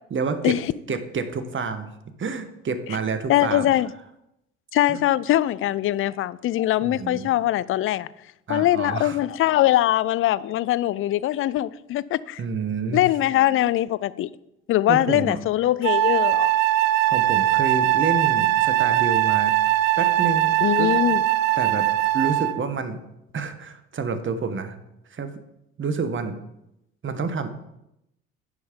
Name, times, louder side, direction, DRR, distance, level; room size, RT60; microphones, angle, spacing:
voice 1, 0.1-0.6 0.9-1.9 2.2-3.7 4.9-5.0 6.8-7.3 8.5-9.2 12.4-13.0 14.9-15.4 17.1-19.5 20.0-20.9 21.6-21.9 22.1-23.0 23.3-24.8 25.1-25.3 25.8-26.4 27.0-27.5, right 5 dB, 30° right, 1.2 m, -28 dB
voice 2, 3.3-3.9 4.7-8.1 8.5-12.4 12.9-14.3 14.7-16.5 20.6-21.2, left 14 dB, 35° left, 0.4 m, -22 dB
Wind instrument woodwind instrument, 15.8-22.6, right 15 dB, 75° right, 0.5 m, -21 dB
9.6 x 5.6 x 5.1 m
figure-of-eight pair, 55°, 39 cm